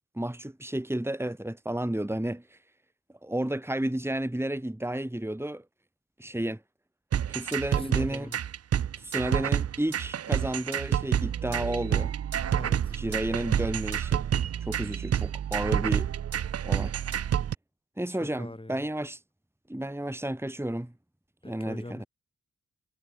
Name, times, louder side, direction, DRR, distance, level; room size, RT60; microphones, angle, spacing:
voice 1, 0.2-2.6 3.2-5.6 6.2-6.6 7.3-8.3 8.9-12.1 12.9-14.2 14.6-16.1 16.6-16.9 18.0-19.2 19.7-20.9 21.4-22.0, right 1 dB, 5° right, 2.5 m, -32 dB
sound 1, 7.1-17.5, right 9 dB, 45° right, 0.5 m, -28 dB
voice 2, 7.7-8.4 12.5-12.9 18.1-18.9 21.4-22.1, left 1 dB, 15° left, 3.7 m, -42 dB
cardioid pair, 60°, 35 cm